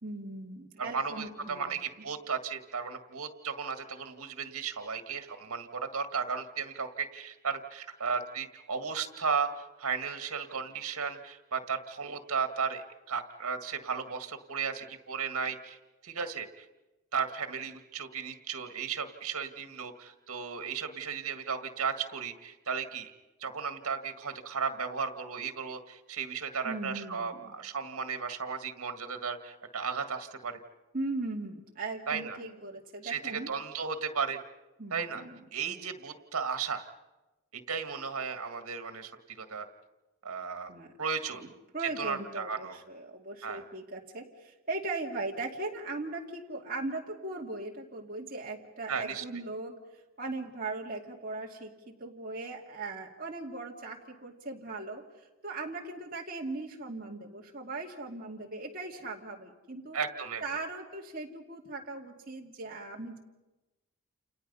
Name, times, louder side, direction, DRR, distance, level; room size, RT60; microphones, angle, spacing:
voice 1, 0.0-2.1 26.6-27.6 30.9-33.5 34.8-35.4 35.7-35.8 40.7-40.9 41.4-41.5 41.7-49.8 50.2-60.0 60.4-63.2, right 2 dB, 40° right, -2 dB, 2.4 m, -39 dB
voice 2, 0.9-15.8 16.0-16.7 17.1-23.1 23.4-30.6 32.1-32.4 33.0-34.4 34.9-35.2 35.5-36.9 37.5-39.7 40.2-40.7 41.0-41.4 42.0-42.8 43.4-43.6 48.9-49.2 59.9-60.4, right 5 dB, 85° right, 7 dB, 1.8 m, -35 dB
29.0 x 29.0 x 5.6 m, 1.1 s
head